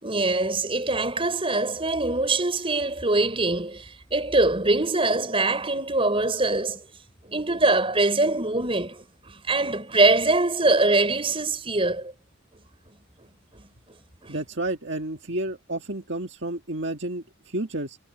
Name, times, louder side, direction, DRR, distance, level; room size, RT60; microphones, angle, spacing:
voice 1, 0.0-6.8 7.2-12.1 14.2-14.4, right 2 dB, 25° right, 5.5 m, -23 dB
voice 2, 14.3-18.0, right 1 dB, 55° right, 1.9 m, -31 dB
head